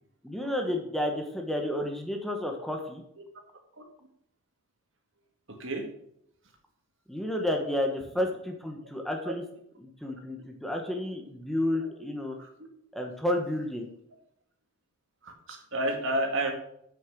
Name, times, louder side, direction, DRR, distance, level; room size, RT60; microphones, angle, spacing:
voice 1, 0.2-3.0 7.1-9.4 9.8-12.4 12.9-13.9, left 1 dB, ahead, 2 dB, 1.2 m, -31 dB
voice 2, 5.5-5.9 9.3-9.4 12.4-12.7 15.2-16.5, right 1 dB, 65° right, 3 dB, 2.0 m, -31 dB
9.0 x 6.3 x 6.1 m, 0.72 s
head